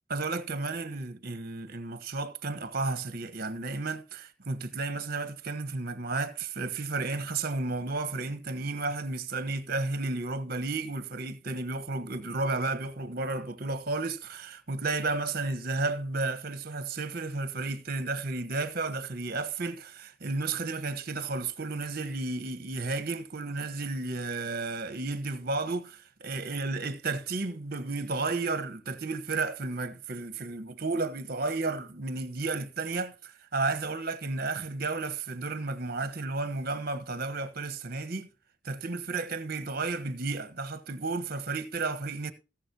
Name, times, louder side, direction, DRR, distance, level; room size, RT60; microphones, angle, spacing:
voice 1, 0.1-38.3 38.6-42.3, right 3 dB, 50° right, 1.3 m, -32 dB
19.0 x 7.5 x 2.9 m
head